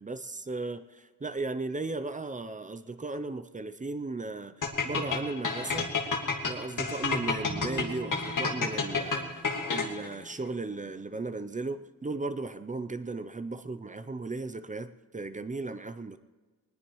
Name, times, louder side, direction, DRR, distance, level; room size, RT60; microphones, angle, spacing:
voice 1, 0.0-5.9 6.4-16.2, right 3 dB, 25° right, 11 dB, 0.5 m, -36 dB
sound 1, 4.6-10.1, left 5 dB, 65° left, 2.0 m, -30 dB
Bowed string instrument, 7.5-10.8, right 1 dB, 60° right, 4.3 m, -44 dB
21.5 x 19.5 x 3.1 m, 1.4 s
wide cardioid pair, 165°, 34 cm